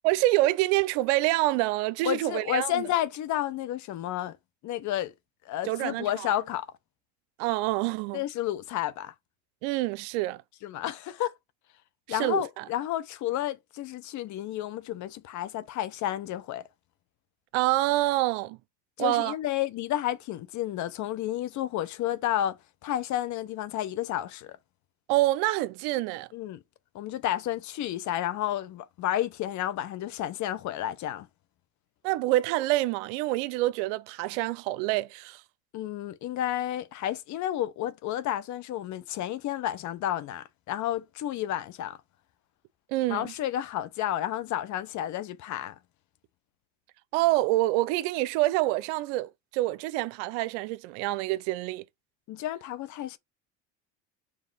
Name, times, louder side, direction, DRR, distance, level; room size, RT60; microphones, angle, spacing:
voice 1, 0.0-2.8 5.6-6.4 7.4-8.2 9.6-10.4 12.1-12.6 17.5-18.6 19.0-19.3 25.1-26.3 32.0-35.4 42.9-43.3 47.1-51.8, right 18 dB, 75° right, 0.6 m, -27 dB
voice 2, 2.0-4.4 4.6-5.1 5.5-6.7 8.1-9.1 10.6-11.3 12.1-16.6 19.0-22.6 22.8-24.5 26.3-26.6 26.9-31.3 35.7-42.0 43.1-45.7 52.3-53.2, left 12 dB, 50° left, 0.8 m, -31 dB
5.1 x 3.4 x 5.4 m
supercardioid pair, 90°, 36 cm